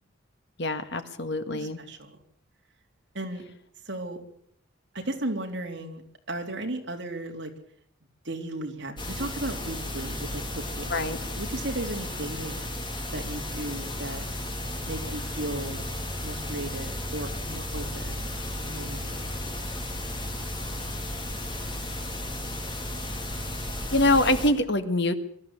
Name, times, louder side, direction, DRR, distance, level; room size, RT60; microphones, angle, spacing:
voice 1, 0.6-1.8 10.9-11.2 23.9-25.1, left 1 dB, 55° left, 9 dB, 1.6 m, -24 dB
voice 2, 1.5-2.2 3.1-3.4 3.8-4.2 4.9-6.0 6.3-7.5 8.2-11.0 11.4-12.7 13.1-14.2 14.8-15.8 16.2-18.3 18.7-19.2, right 1 dB, 55° right, 2 dB, 3.6 m, -35 dB
sound 1, 9.0-24.5, left 1 dB, 20° left, 2.8 m, -34 dB
23.0 x 13.5 x 8.4 m, 0.66 s
head